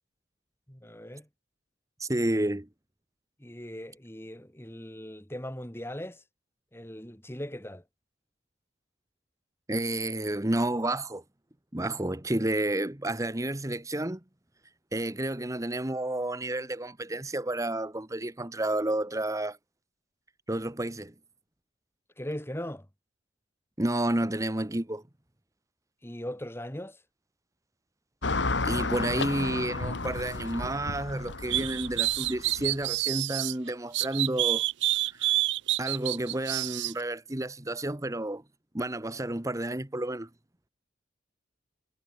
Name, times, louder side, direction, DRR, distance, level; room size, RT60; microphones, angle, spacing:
voice 1, 0.7-1.3 3.4-6.2 6.7-7.8 22.2-22.9 26.0-27.0, equal, 15° left, 3.5 m, -39 dB
voice 2, 2.0-2.7 9.7-11.2 11.7-14.2 14.9-19.6 20.5-21.1 23.8-25.0 28.6-34.6 35.1-35.3 35.8-38.4 38.7-40.3, right 1 dB, 15° right, 1.1 m, -30 dB
Car passing by / Traffic noise roadway noise, 28.2-32.9, left 3 dB, 70° left, 1.9 m, -32 dB
sound 1, 31.5-33.5 33.9-36.9, right 17 dB, 65° right, 0.5 m, -28 dB
head